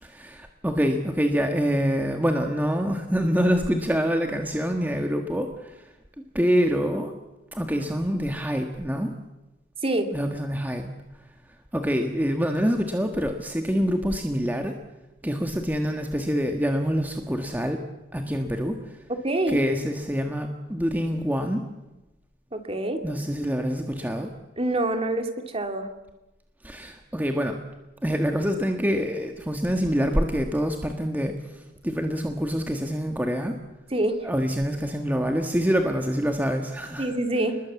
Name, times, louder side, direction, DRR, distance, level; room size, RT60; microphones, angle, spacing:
voice 1, 0.0-5.9 6.3-7.1 7.5-9.1 10.1-10.9 11.7-14.8 15.2-17.8 18.1-19.0 19.5-21.6 23.0-24.3 26.6-27.6 28.0-33.6 34.2-37.1, equal, 10° right, 4 dB, 1.6 m, -26 dB
voice 2, 19.2-19.6 22.5-23.0 24.6-25.9 33.9-34.3 37.0-37.6, right 1 dB, 30° right, 6 dB, 2.7 m, -26 dB
28.5 x 21.0 x 8.4 m, 1.0 s
head